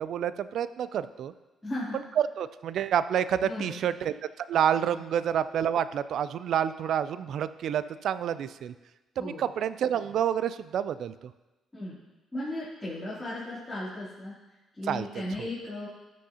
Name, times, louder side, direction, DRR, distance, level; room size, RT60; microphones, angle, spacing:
voice 1, 0.0-1.3 1.9-8.7 9.2-11.1 14.9-15.5, right 9 dB, 70° right, 14 dB, 0.3 m, -29 dB
voice 2, 1.6-2.0 3.4-3.8 9.2-9.5 11.7-12.0 12.3-14.3 14.8-15.9, left 1 dB, 15° left, -12 dB, 3.1 m, -36 dB
13.0 x 6.2 x 2.9 m, 1.1 s
cardioid pair, 90°, 0 cm